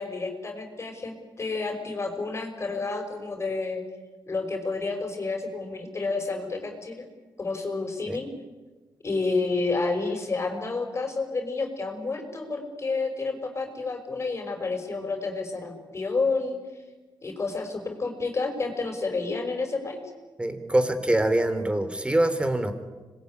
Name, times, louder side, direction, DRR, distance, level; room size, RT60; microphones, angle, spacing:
voice 1, 0.0-3.8 4.3-7.1 7.4-8.3 9.0-16.6 17.2-20.0, left 3 dB, 35° left, 5 dB, 5.7 m, -30 dB
voice 2, 20.4-22.7, right 1 dB, 15° right, 10 dB, 3.6 m, -24 dB
26.0 x 21.0 x 9.9 m, 1.3 s
cardioid pair, 80°, 8 cm